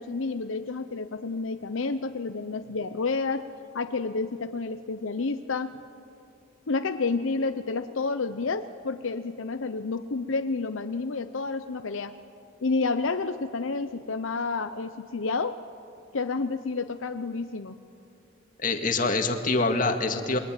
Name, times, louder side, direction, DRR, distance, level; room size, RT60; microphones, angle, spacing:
voice 1, 0.0-3.5 3.7-5.8 6.7-12.2 12.6-15.6 16.1-17.8, left 4 dB, 80° left, 9 dB, 0.8 m, -30 dB
voice 2, 18.6-20.4, left 3 dB, 40° left, 5 dB, 2.0 m, -25 dB
28.5 x 22.5 x 9.0 m, 2.7 s
head